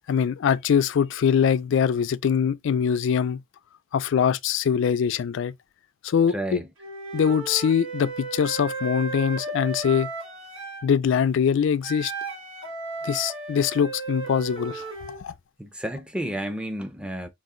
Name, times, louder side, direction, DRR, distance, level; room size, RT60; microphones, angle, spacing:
voice 1, 0.1-3.4 3.9-5.5 6.0-6.6 7.1-10.1 10.8-12.1 13.0-14.9 15.2-15.3, left 7 dB, 60° left, 0.3 m, -23 dB
voice 2, 6.3-6.7 15.6-17.3, right 1 dB, 5° right, 0.5 m, -31 dB
Wind instrument woodwind instrument, 6.8-10.9 11.8-15.2, right 3 dB, 65° right, 1.8 m, -34 dB
4.0 x 2.4 x 3.6 m
head